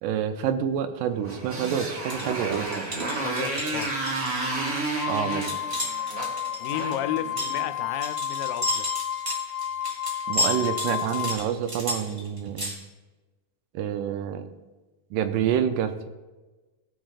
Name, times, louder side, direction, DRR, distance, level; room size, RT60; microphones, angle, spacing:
voice 1, 0.0-2.8 5.1-5.5 10.3-12.7 13.7-14.5 15.1-16.1, right 9 dB, 80° right, 8 dB, 2.2 m, -27 dB
Motorcycle, 1.2-7.7, right 2 dB, 60° right, 0.8 m, -31 dB
sound 1, 2.1-12.7, left 1 dB, 30° right, 1.1 m, -33 dB
voice 2, 3.2-4.0 4.9-5.1 6.6-8.9, left 12 dB, 90° left, 10 dB, 2.2 m, -33 dB
sound 2, 5.0-11.4, left 10 dB, 65° left, 2.6 m, -31 dB
17.0 x 6.2 x 2.4 m, 1.2 s
omnidirectional pair, 3.8 m